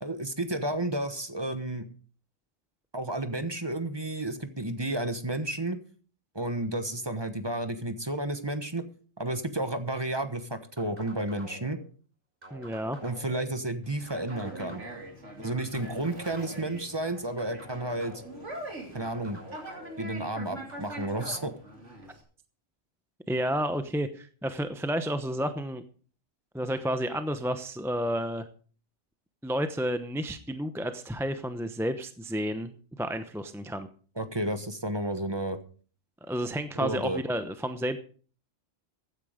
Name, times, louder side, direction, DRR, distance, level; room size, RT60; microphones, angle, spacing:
voice 1, 0.0-1.9 2.9-5.8 6.3-8.8 9.2-11.8 13.0-14.8 15.4-18.1 18.9-19.4 20.0-21.5 34.2-35.6 36.7-37.2, right 1 dB, 20° right, 9 dB, 1.2 m, -32 dB
sound 1, 10.8-11.8 12.4-13.5 14.1-15.1 15.7-16.8 17.4-18.4 19.0-20.1 20.7-21.5, equal, 45° right, 5.5 m, -47 dB
voice 2, 12.5-13.0 23.3-25.8 26.5-28.5 29.4-33.9 36.3-38.0, equal, ahead, 9 dB, 0.7 m, -31 dB
Conversation, 13.8-22.2, right 1 dB, 65° right, 3.1 m, -43 dB
15.5 x 9.7 x 5.1 m, 0.41 s
omnidirectional pair, 1.3 m